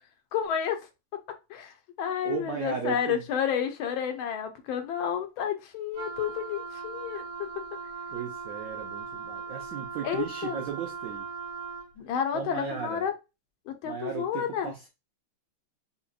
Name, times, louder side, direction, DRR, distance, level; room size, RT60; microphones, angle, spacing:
voice 1, 0.3-0.8 1.5-7.2 7.6-7.7 10.0-10.6 12.0-13.1 13.7-14.7, left 8 dB, 75° left, 1.6 m, -30 dB
voice 2, 2.2-3.2 8.1-11.3 12.3-13.1 13.8-14.9, right 7 dB, 90° right, 0.7 m, -36 dB
Wind instrument woodwind instrument, 5.9-11.9, right 5 dB, 70° right, 1.8 m, -39 dB
5.6 x 2.1 x 2.3 m
omnidirectional pair, 2.3 m